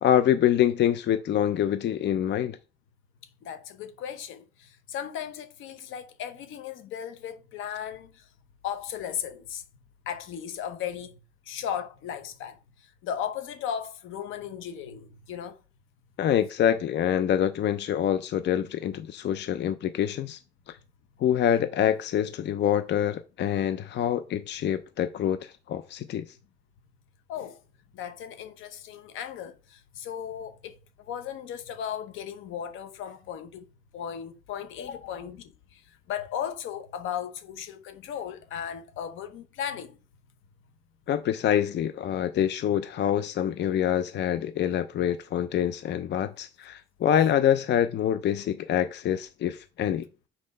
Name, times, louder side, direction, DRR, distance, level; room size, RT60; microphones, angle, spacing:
voice 1, 0.0-2.6 16.2-20.4 21.2-26.2 41.1-50.0, left 10 dB, 60° left, 0.6 m, -25 dB
voice 2, 3.4-8.3 8.6-9.6 10.1-11.2 11.4-15.6 27.3-27.6 27.9-40.0, left 9 dB, 90° left, 0.9 m, -36 dB
6.5 x 4.2 x 5.4 m
cardioid pair, 90°, 20 cm